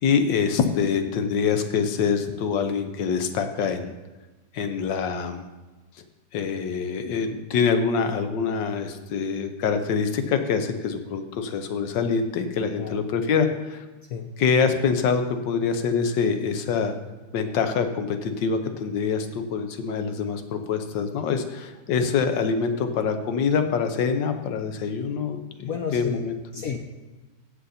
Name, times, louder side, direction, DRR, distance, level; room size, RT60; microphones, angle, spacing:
voice 1, 0.0-3.9 4.5-5.5 6.3-13.9 14.4-16.9 17.3-26.4, left 6 dB, 85° left, 8 dB, 1.6 m, -25 dB
voice 2, 25.6-26.3 26.5-26.8, left 6 dB, 60° left, 3 dB, 1.0 m, -31 dB
15.5 x 5.6 x 4.1 m, 1.2 s
omnidirectional pair, 1.9 m